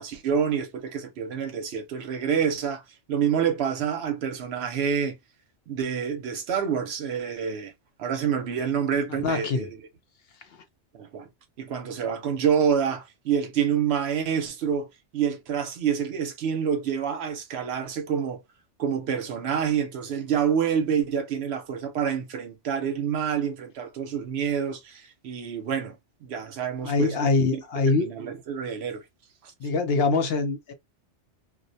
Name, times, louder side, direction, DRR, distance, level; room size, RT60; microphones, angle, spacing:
voice 1, 0.0-2.8 3.1-5.2 5.7-7.7 8.0-9.8 10.9-11.3 11.6-14.9 15.1-18.4 18.8-29.0 29.4-29.5, right 7 dB, 65° right, 0.8 m, -27 dB
voice 2, 9.2-9.7 26.8-28.1 29.6-30.7, left 3 dB, 65° left, 0.7 m, -23 dB
2.3 x 2.1 x 2.6 m
omnidirectional pair, 1.2 m